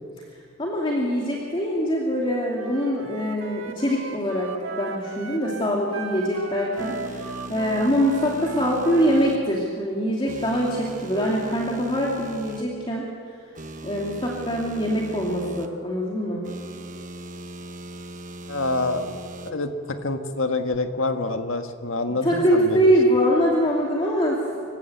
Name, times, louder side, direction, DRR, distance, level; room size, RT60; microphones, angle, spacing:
voice 1, 0.6-13.1 13.8-16.4 22.1-24.4, equal, 25° left, -3 dB, 2.5 m, -23 dB
Wind instrument woodwind instrument, 2.6-9.4, right 3 dB, 90° right, 1.7 m, -37 dB
sound 1, 6.8-9.4 10.3-12.6 13.5-15.7 16.4-19.5, right 1 dB, 40° right, 1.2 m, -39 dB
voice 2, 18.5-19.2 19.4-19.7 20.0-22.9, left 2 dB, 80° left, 6 dB, 1.6 m, -26 dB
26.5 x 16.0 x 8.1 m, 2.3 s
head